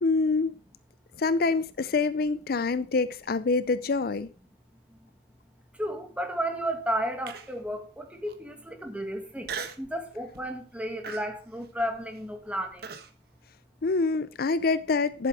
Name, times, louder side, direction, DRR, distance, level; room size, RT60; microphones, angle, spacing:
voice 1, 0.0-0.6 1.2-4.3 13.8-15.3, left 3 dB, 55° left, 0.5 m, -26 dB
voice 2, 5.8-9.5 9.8-12.8, equal, 10° right, 2.0 m, -33 dB
Human voice, 7.3-7.7 8.2-8.3 9.4-9.9 10.3-10.6 11.0-13.1, right 6 dB, 60° right, 1.3 m, -39 dB
11.0 x 7.9 x 4.8 m
head